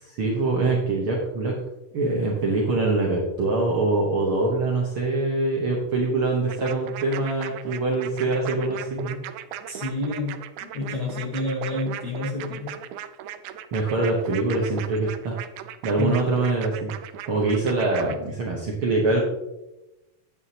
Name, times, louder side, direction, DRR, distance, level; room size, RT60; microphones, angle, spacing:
voice 1, 0.0-1.5 1.9-9.2 13.7-15.4 15.8-16.9 17.3-19.2, right 2 dB, 60° right, -2 dB, 1.5 m, -24 dB
sound 1, 6.5-18.2, right 10 dB, 80° right, 1.9 m, -37 dB
voice 2, 9.7-12.8 16.0-16.3, left 2 dB, 55° left, -3 dB, 1.2 m, -29 dB
9.4 x 8.7 x 2.8 m, 0.97 s
omnidirectional pair, 3.7 m